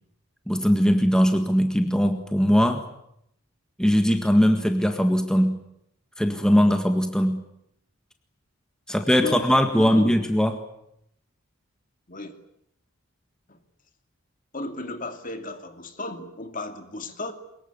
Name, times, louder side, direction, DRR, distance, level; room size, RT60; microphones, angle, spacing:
voice 1, 0.5-2.9 3.8-5.6 6.2-7.4 8.9-10.6, equal, 5° left, 6 dB, 1.7 m, -20 dB
voice 2, 9.1-9.5 9.7-10.1 12.1-12.4 13.5-13.6 14.5-17.3, left 1 dB, 40° left, 7 dB, 2.5 m, -34 dB
24.0 x 22.0 x 9.6 m, 0.77 s
head